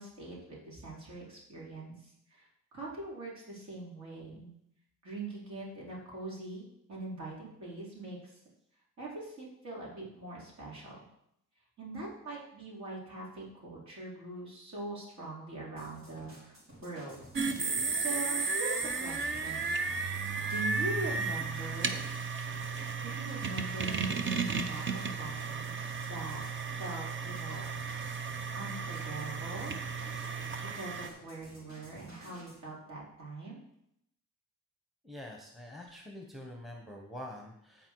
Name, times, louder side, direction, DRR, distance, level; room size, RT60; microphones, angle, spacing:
voice 1, 0.0-4.5 5.0-8.4 9.0-11.0 11.8-17.2 17.9-19.7 20.5-22.0 23.0-24.4 24.7-25.8 26.0-26.4 26.8-27.7 28.5-29.7 30.6-33.6, right 2 dB, 55° right, -5 dB, 4.2 m, -43 dB
sound 1, 15.8-32.6, equal, 75° right, 3.8 m, -53 dB
sound 2, 17.4-31.1, right 4 dB, 35° right, 0.8 m, -34 dB
voice 2, 35.0-37.9, left 1 dB, ahead, 1 dB, 1.2 m, -46 dB
14.0 x 4.7 x 4.8 m, 0.77 s
cardioid pair, 110°, 33 cm